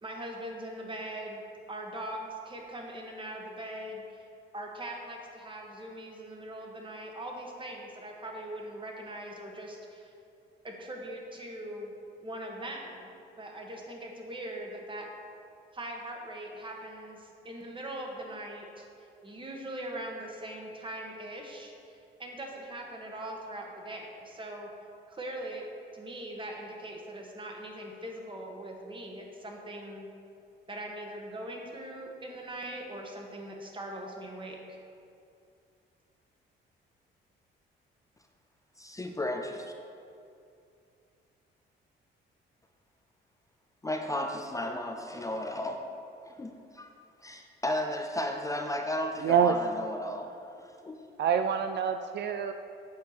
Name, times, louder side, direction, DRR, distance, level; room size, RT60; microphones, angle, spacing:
voice 1, 0.0-1.4 1.7-4.2 4.5-10.1 10.6-11.9 12.2-15.1 15.7-24.7 25.1-25.6 25.9-30.1 30.7-34.8, right 1 dB, 25° right, 0 dB, 1.5 m, -41 dB
voice 2, 39.0-39.7 43.8-45.8 46.2-46.9 47.2-50.3 50.6-51.0, left 1 dB, 15° left, 3 dB, 0.6 m, -34 dB
voice 3, 49.2-49.6 51.2-52.5, right 7 dB, 60° right, 8 dB, 0.4 m, -26 dB
8.2 x 4.4 x 6.7 m, 2.5 s
cardioid pair, 90°, 20 cm